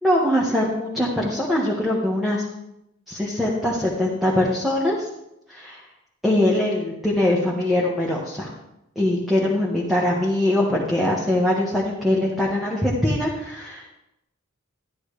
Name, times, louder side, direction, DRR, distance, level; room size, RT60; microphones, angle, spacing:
voice 1, 0.0-2.4 3.1-5.1 5.5-5.8 6.2-8.5 8.9-13.9, left 1 dB, ahead, -5 dB, 1.4 m, -22 dB
12.5 x 10.5 x 3.3 m, 0.84 s
head